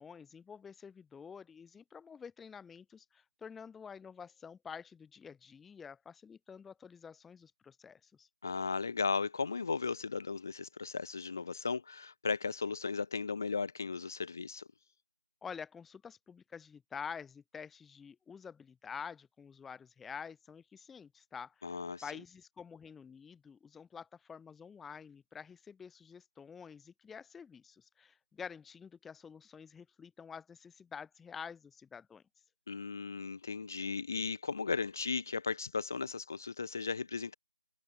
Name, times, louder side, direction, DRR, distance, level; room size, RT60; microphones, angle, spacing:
voice 1, 0.0-8.3 15.4-21.7 22.0-32.2, left 6 dB, 5° left, 0.6 m, -48 dB
voice 2, 8.4-14.7 21.6-22.0 32.7-37.4, left 4 dB, 40° left, 1.2 m, -36 dB
figure-of-eight pair, 165°, 3 cm